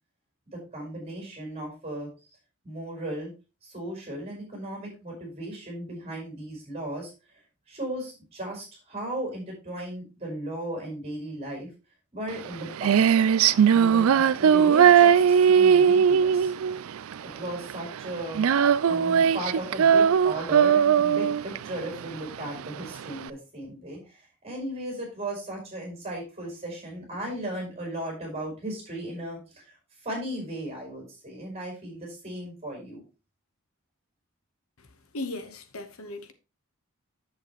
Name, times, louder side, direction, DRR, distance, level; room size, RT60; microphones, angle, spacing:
voice 1, 0.5-2.4 2.6-3.3 3.6-7.1 7.7-11.7 12.1-13.1 13.7-16.5 17.2-18.4 18.9-29.7 30.0-33.0, right 1 dB, 30° right, 5.1 m, -36 dB
Female singing, 12.3-23.3, right 7 dB, 70° right, 0.4 m, -20 dB
voice 2, 35.1-36.3, left 2 dB, 70° left, 1.1 m, -36 dB
8.5 x 7.6 x 3.0 m
head